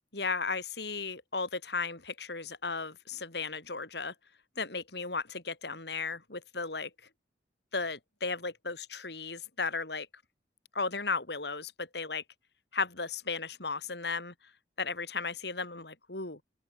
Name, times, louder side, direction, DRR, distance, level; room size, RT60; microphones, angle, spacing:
voice 1, 0.1-4.1 4.6-6.9 7.7-10.1 10.7-12.2 12.7-14.3 14.8-16.4, left 4 dB, 65° left, 3.7 m, -35 dB
open air
head